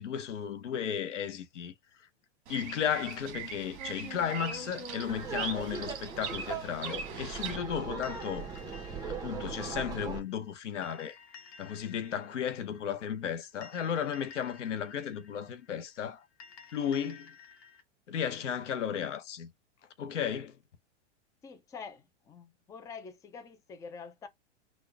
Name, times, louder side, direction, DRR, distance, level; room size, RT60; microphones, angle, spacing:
voice 1, 0.0-1.7 2.5-8.5 9.1-11.2 11.6-16.2 16.7-17.3 18.1-19.5 20.0-20.6, left 8 dB, 90° left, 0.8 m, -34 dB
Bird vocalization bird call bird song, 2.5-7.6, right 6 dB, 40° right, 1.3 m, -41 dB
Laughter, 5.1-10.2, right 5 dB, 10° right, 1.0 m, -39 dB
sound 1, 8.0-17.8, left 6 dB, 55° left, 1.2 m, -54 dB
voice 2, 21.4-24.3, left 5 dB, 10° left, 0.4 m, -46 dB
4.0 x 2.4 x 3.3 m
hypercardioid pair, 125°, 35 cm